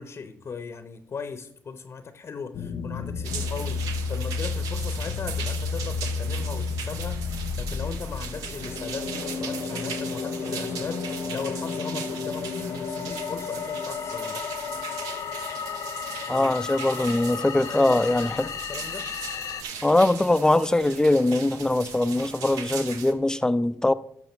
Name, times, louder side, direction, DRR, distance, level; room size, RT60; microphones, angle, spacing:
voice 1, 0.0-14.5 16.3-19.1, left 5 dB, 45° left, 0.9 m, -38 dB
sound 1, 2.5-19.6, left 5 dB, 70° left, 0.9 m, -32 dB
sound 2, 3.2-23.1, right 7 dB, 85° right, 0.9 m, -39 dB
voice 2, 16.3-18.4 19.8-23.9, left 2 dB, 10° left, 0.6 m, -22 dB
13.0 x 6.2 x 4.4 m
supercardioid pair, 60°, 6 cm